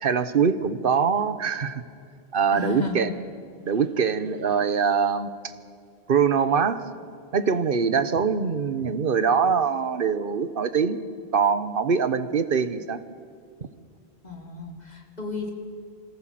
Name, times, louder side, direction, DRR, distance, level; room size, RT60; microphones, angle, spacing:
voice 1, 0.0-1.8 2.3-3.1 3.7-5.3 6.1-6.8 7.3-11.0 11.3-13.0, right 6 dB, 60° right, 13 dB, 1.2 m, -23 dB
voice 2, 2.5-3.1 14.2-15.5, left 4 dB, 40° left, 2 dB, 3.1 m, -33 dB
26.0 x 14.5 x 7.6 m, 2.2 s
omnidirectional pair, 1.1 m